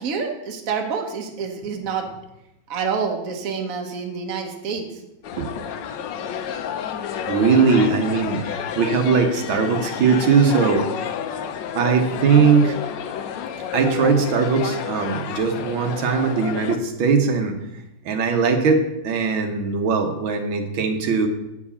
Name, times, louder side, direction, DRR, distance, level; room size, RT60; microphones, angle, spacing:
voice 1, 0.0-2.1 2.7-5.0, right 5 dB, 50° right, 3 dB, 1.4 m, -27 dB
sound 1, 5.2-16.8, left 8 dB, 75° left, 1.3 m, -30 dB
voice 2, 7.3-10.8 11.7-12.8 13.7-17.6 18.0-21.3, right 5 dB, 80° right, 5 dB, 1.8 m, -20 dB
9.2 x 4.8 x 6.9 m, 0.89 s
omnidirectional pair, 2.2 m